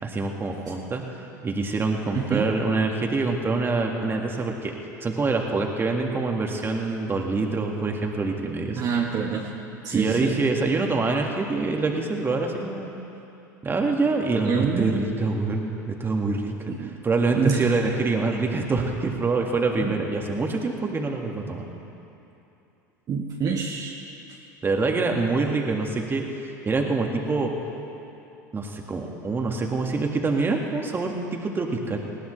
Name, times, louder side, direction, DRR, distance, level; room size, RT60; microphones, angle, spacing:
voice 1, 0.0-1.0 1.4-4.7 5.0-8.8 9.9-13.0 13.6-21.6 24.6-27.5 28.5-32.0, right 3 dB, 20° right, 1 dB, 2.0 m, -25 dB
voice 2, 2.1-2.5 8.8-9.5 9.8-10.4 14.4-15.1 16.7-16.9 17.3-17.8 19.8-19.9 23.1-23.9, right 6 dB, 40° right, -2 dB, 1.5 m, -26 dB
20.0 x 17.0 x 3.3 m, 2.8 s
hypercardioid pair, 85°, 10 cm